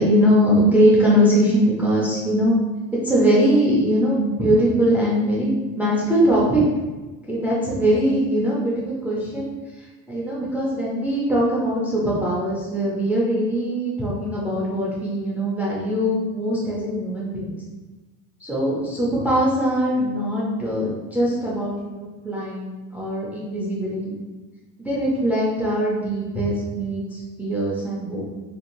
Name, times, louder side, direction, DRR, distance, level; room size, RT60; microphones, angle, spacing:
voice 1, 0.0-2.6 3.0-6.6 7.3-9.5 10.1-17.6 18.4-24.2 24.8-28.3, equal, 5° right, -6 dB, 0.4 m, -21 dB
2.6 x 2.4 x 2.9 m, 1.2 s
cardioid pair, 150°, 34 cm